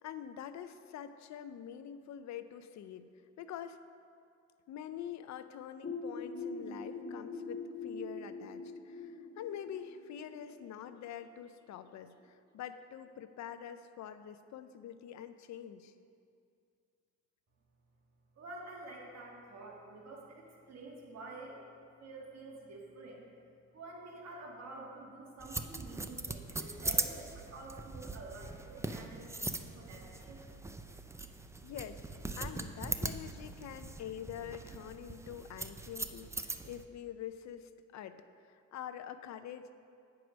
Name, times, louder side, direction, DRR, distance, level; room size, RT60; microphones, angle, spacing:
voice 1, 0.0-3.1 3.4-3.8 4.7-15.9 31.6-32.0 32.4-39.7, left 9 dB, 65° left, 11 dB, 0.5 m, -45 dB
sound 1, 5.8-11.4, left 3 dB, 30° left, 1.9 m, -43 dB
voice 2, 18.4-21.6 22.0-23.2 23.7-30.5, right 2 dB, 60° right, -1 dB, 1.5 m, -49 dB
sound 2, 25.4-36.8, right 2 dB, 10° right, 0.4 m, -40 dB
9.2 x 4.8 x 6.1 m, 2.4 s
cardioid pair, 90°, 30 cm